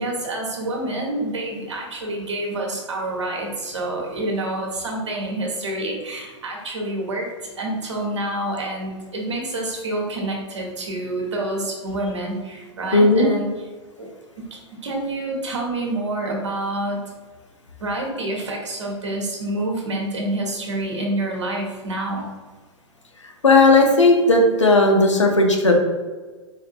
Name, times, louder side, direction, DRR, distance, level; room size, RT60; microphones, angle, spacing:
voice 1, 0.0-13.5 14.0-14.1 14.4-17.0 17.8-22.3, right 1 dB, 70° right, -1 dB, 1.2 m, -27 dB
voice 2, 12.9-13.3 23.4-25.8, left 2 dB, 80° left, 2 dB, 0.7 m, -15 dB
4.5 x 3.6 x 2.5 m, 1.3 s
figure-of-eight pair, 95°, 15 cm